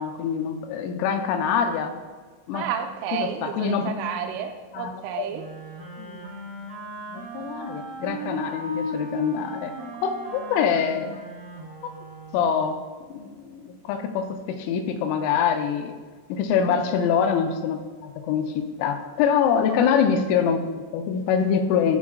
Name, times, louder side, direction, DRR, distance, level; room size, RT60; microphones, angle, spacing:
voice 1, 0.0-1.9 2.5-2.7 3.2-3.9 4.3-4.4 4.7-5.3 6.0-6.3 7.1-9.7 10.0-11.2 12.3-12.8 13.1-16.0 16.3-22.0, left 7 dB, 85° left, 6 dB, 3.2 m, -25 dB
voice 2, 2.5-5.4 16.7-16.9, right 8 dB, 85° right, 6 dB, 2.6 m, -31 dB
Wind instrument woodwind instrument, 5.3-12.6, right 1 dB, 60° right, 1.0 m, -36 dB
12.5 x 4.7 x 3.6 m, 1.5 s
omnidirectional pair, 5.7 m